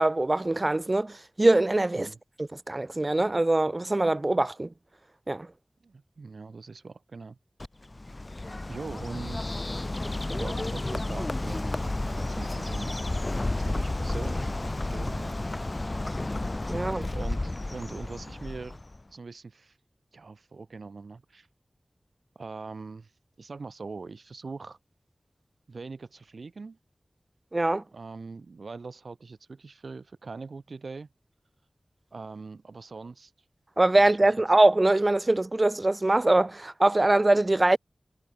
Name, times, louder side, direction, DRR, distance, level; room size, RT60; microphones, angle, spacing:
voice 1, 0.0-2.1 2.4-4.7 5.3-5.5 16.7-17.1 27.5-27.8 33.8-37.8, right 2 dB, 35° right, 0.7 m, -23 dB
voice 2, 5.8-7.4 8.7-13.0 13.5-15.6 17.1-18.8 19.1-19.8 20.1-21.5 22.3-23.1 23.4-24.8 25.7-26.8 27.9-31.1 32.1-33.3 33.9-34.1, right 4 dB, 85° right, 2.7 m, -42 dB
Bird, 7.6-19.0, left 2 dB, 35° left, 1.5 m, -32 dB
wide cardioid pair, 75°, 0 cm